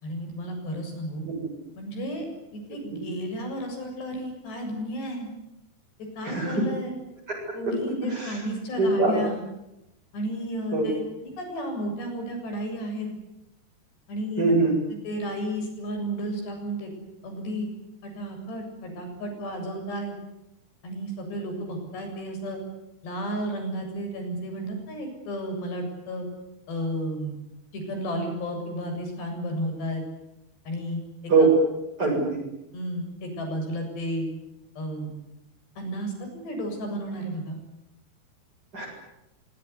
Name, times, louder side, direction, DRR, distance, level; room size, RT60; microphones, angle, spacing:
voice 1, 0.0-1.2 1.8-2.3 2.5-5.3 6.2-6.9 7.5-9.4 10.1-13.1 14.1-14.4 14.9-16.9 17.2-17.7 18.0-20.1 20.8-22.6 23.0-26.3 26.7-27.3 27.7-30.0 30.7-31.0 31.4-31.5 32.0-32.1 32.7-34.3 34.8-35.1 35.8-37.6, equal, 85° left, 4 dB, 9.6 m, -32 dB
voice 2, 6.2-6.6 7.3-7.4 8.0-8.4 8.8-9.2 10.7-10.9 14.4-14.8 31.3-31.5 32.0-32.4 38.7-38.8, right 3 dB, 20° right, -4 dB, 8.2 m, -23 dB
25.5 x 23.0 x 9.9 m, 0.93 s
omnidirectional pair, 4.7 m